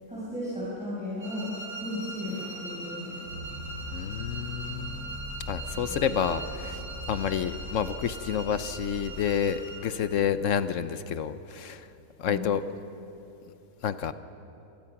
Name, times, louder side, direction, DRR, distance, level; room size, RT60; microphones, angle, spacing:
voice 1, 0.1-1.5 1.8-3.3 5.9-6.3 12.2-12.5, left 1 dB, 5° right, -9 dB, 5.6 m, -35 dB
sound 1, 1.2-9.9, right 2 dB, 50° right, 6.5 m, -41 dB
sound 2, 3.3-10.5, left 1 dB, 90° right, 4.6 m, -41 dB
voice 2, 3.9-5.2 5.5-11.9 12.2-12.6 13.8-14.1, left 8 dB, 65° left, 12 dB, 1.0 m, -29 dB
26.0 x 20.0 x 6.0 m, 2.8 s
omnidirectional pair, 1.5 m